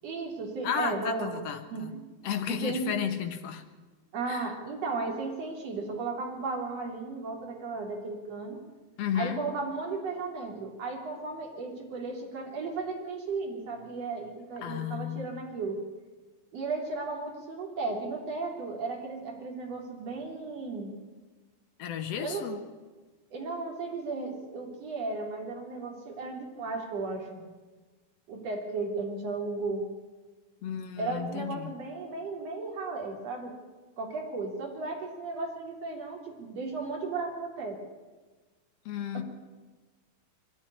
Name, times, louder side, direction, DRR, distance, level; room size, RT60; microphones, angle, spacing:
voice 1, 0.0-1.3 1.7-2.1 2.5-2.9 4.1-8.6 9.1-15.8 16.5-20.9 22.2-22.5 23.3-27.4 28.3-29.9 31.0-33.6 34.0-37.8, right 3 dB, 45° right, 0 dB, 4.1 m, -35 dB
voice 2, 0.6-1.9 2.2-3.6 4.3-4.5 9.0-9.5 14.6-15.3 21.8-22.6 30.6-31.7 38.8-39.2, left 9 dB, 65° left, 6 dB, 1.6 m, -33 dB
22.5 x 12.0 x 9.8 m, 1.3 s
omnidirectional pair, 4.4 m